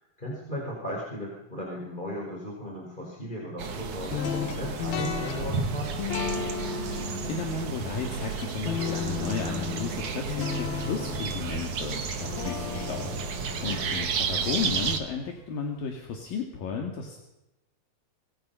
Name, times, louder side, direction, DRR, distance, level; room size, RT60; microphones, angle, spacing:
voice 1, 0.0-6.0 13.5-13.8, equal, 10° left, -2 dB, 5.0 m, -37 dB
sound 1, 3.6-15.0, right 5 dB, 55° right, 3.3 m, -32 dB
sound 2, 4.1-15.2, left 7 dB, 85° left, 3.9 m, -35 dB
voice 2, 6.9-17.2, left 5 dB, 70° left, 2 dB, 4.0 m, -34 dB
29.0 x 24.0 x 5.7 m, 0.95 s
omnidirectional pair, 4.2 m